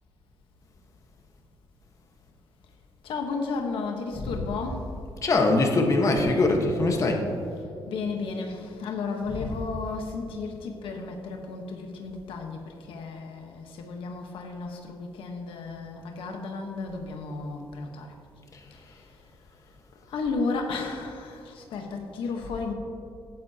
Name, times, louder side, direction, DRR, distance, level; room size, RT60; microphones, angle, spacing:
voice 1, 3.0-4.9 7.5-18.1 18.7-19.0 19.9-22.7, left 4 dB, 90° left, 3 dB, 1.2 m, -33 dB
voice 2, 5.2-7.3 9.3-9.5 18.5-18.9, left 2 dB, 40° left, 2 dB, 1.3 m, -23 dB
16.0 x 9.5 x 2.9 m, 2.6 s
cardioid pair, 130°, 9 cm